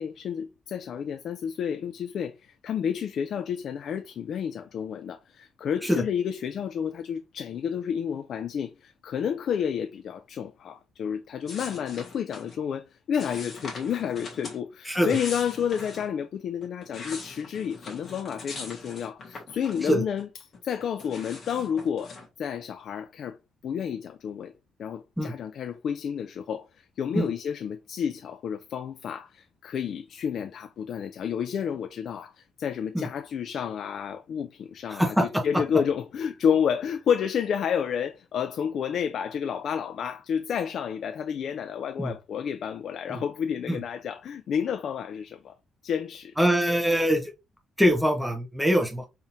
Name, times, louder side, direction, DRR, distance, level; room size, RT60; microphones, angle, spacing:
voice 1, 0.0-20.3 20.6-23.4 23.6-24.5 24.8-45.5 45.8-46.3, left 8 dB, 50° left, 0.3 m, -30 dB
sound 1, 11.5-12.6 13.2-14.6 14.9-16.1 16.6-20.2 20.5-22.3, left 3 dB, 30° left, 1.5 m, -42 dB
voice 2, 34.9-35.2 42.0-42.1 43.1-43.2 43.7-43.8 46.4-47.3 47.8-49.1, equal, ahead, 0.9 m, -23 dB
4.3 x 3.6 x 2.6 m
cardioid pair, 170°, 0 cm